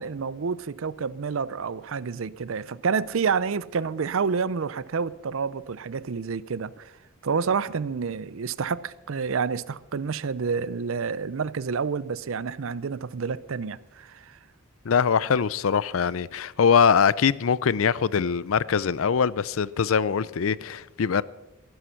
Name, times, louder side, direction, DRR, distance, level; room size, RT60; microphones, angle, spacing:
voice 1, 0.0-6.9 7.2-14.4, right 5 dB, 65° right, 0.5 m, -29 dB
voice 2, 14.9-21.2, left 6 dB, 70° left, 0.5 m, -22 dB
15.5 x 11.5 x 5.7 m
head